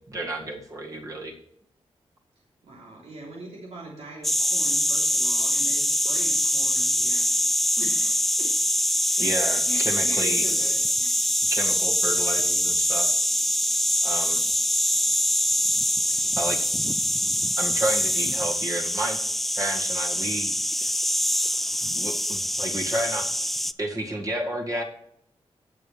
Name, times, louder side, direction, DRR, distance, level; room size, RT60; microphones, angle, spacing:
voice 1, 0.1-1.3 9.2-10.5 11.5-13.2 14.0-14.4 16.0-16.6 17.6-19.2 19.5-20.5 20.8-20.9 21.8-23.3 23.8-24.8, right 1 dB, 30° right, 0 dB, 2.0 m, -31 dB
voice 2, 2.6-7.3 7.8-8.8 9.1-11.4, right 2 dB, 80° right, -3 dB, 3.2 m, -42 dB
sound 1, 4.2-23.7, equal, ahead, 0.3 m, -24 dB
16.5 x 7.0 x 3.3 m, 0.72 s
wide cardioid pair, 155°, 11 cm